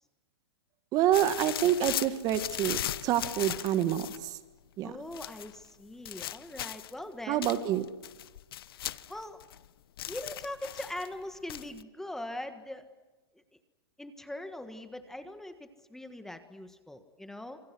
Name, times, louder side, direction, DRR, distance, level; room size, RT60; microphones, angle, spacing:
voice 1, 0.9-4.4 4.8-4.9 7.3-7.9, right 11 dB, 30° right, 11 dB, 1.7 m, -27 dB
sound 1, 1.1-4.3 5.1-5.5 6.0-7.0 7.4-9.7 10.0-11.1 11.5-11.8, left 12 dB, 65° left, 1.1 m, -38 dB
voice 2, 4.8-7.5 9.1-9.4 10.1-12.9 14.0-17.6, left 1 dB, 5° left, 9 dB, 1.5 m, -41 dB
29.5 x 27.0 x 6.3 m, 1.2 s
hypercardioid pair, 145°, 13 cm